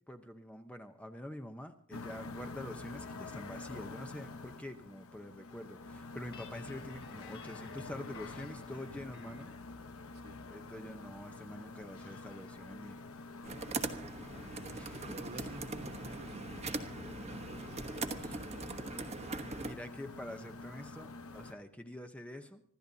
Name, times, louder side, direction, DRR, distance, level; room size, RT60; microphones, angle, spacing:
voice 1, 0.1-9.5 10.5-13.0 14.7-15.5 18.2-18.3 19.6-22.6, left 1 dB, 5° left, 6 dB, 0.8 m, -46 dB
sound 1, 1.9-21.5, left 3 dB, 80° left, 1.0 m, -48 dB
Guitar, 6.3-9.6, left 4 dB, 50° left, 3.8 m, -55 dB
sound 2, 13.4-19.7, right 3 dB, 30° right, 1.1 m, -41 dB
voice 2, 14.8-16.6 17.4-19.3, right 2 dB, 50° right, 4 dB, 1.5 m, -52 dB
26.0 x 13.5 x 2.8 m, 0.65 s
head